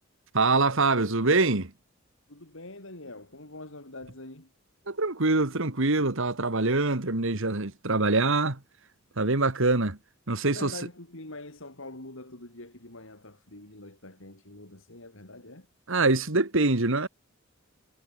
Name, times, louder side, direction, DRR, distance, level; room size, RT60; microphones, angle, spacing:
voice 1, 0.3-1.7 4.9-8.6 9.2-10.0 10.3-10.7 15.9-17.1, right 3 dB, 65° right, 2.1 m, -24 dB
voice 2, 2.3-4.5 10.4-15.7, left 2 dB, 65° left, 4.9 m, -44 dB
head